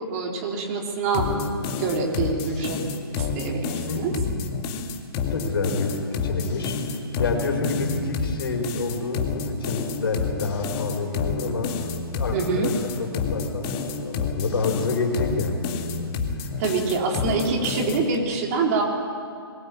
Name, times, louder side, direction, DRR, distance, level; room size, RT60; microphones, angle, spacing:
voice 1, 0.1-1.3 1.8-2.8 3.1-4.1 12.3-12.7 16.6-18.8, right 4 dB, 40° right, 0 dB, 3.6 m, -25 dB
sound 1, 1.1-18.2, left 5 dB, 30° left, 1.9 m, -29 dB
voice 2, 3.9-4.7 5.2-11.8 12.1-16.5, left 4 dB, 70° left, 2 dB, 4.5 m, -29 dB
21.0 x 17.5 x 8.9 m, 2.3 s
figure-of-eight pair, 130°, 13 cm